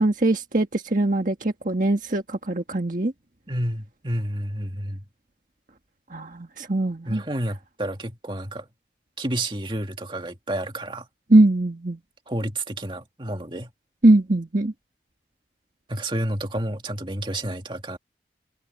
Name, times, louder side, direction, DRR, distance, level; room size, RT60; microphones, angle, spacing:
voice 1, 0.0-3.1 6.1-7.2 11.3-12.0 14.0-14.7, right 2 dB, 50° right, 1.7 m, -21 dB
voice 2, 3.5-5.0 7.1-8.7 9.2-11.1 12.3-13.7 15.9-18.0, right 1 dB, 30° right, 2.3 m, -30 dB
head